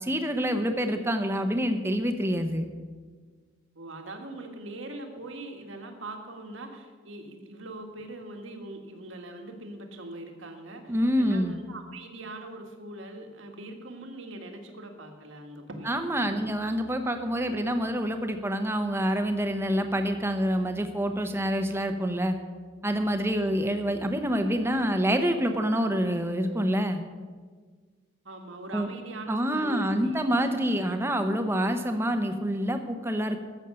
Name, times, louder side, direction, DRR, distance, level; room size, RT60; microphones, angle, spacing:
voice 1, 0.0-2.7 10.9-11.5 15.9-22.3 22.8-27.0 28.7-28.9 29.3-33.4, equal, 10° right, 6 dB, 0.8 m, -27 dB
voice 2, 3.7-16.5 17.4-17.7 23.3-23.7 28.2-30.9, right 2 dB, 70° right, 4 dB, 1.7 m, -42 dB
13.0 x 7.2 x 6.9 m, 1.5 s
head